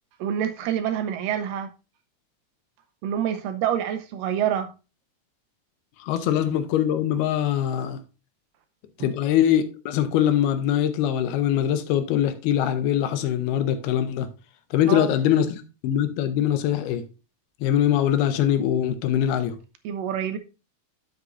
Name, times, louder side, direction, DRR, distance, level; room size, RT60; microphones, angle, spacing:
voice 1, 0.2-1.7 3.0-4.7 14.9-15.1 19.8-20.4, right 9 dB, 75° right, 2.2 m, -26 dB
voice 2, 6.0-8.0 9.0-14.3 14.7-17.0 17.6-19.6, left 10 dB, 85° left, 2.9 m, -23 dB
9.7 x 7.9 x 2.5 m
omnidirectional pair, 4.4 m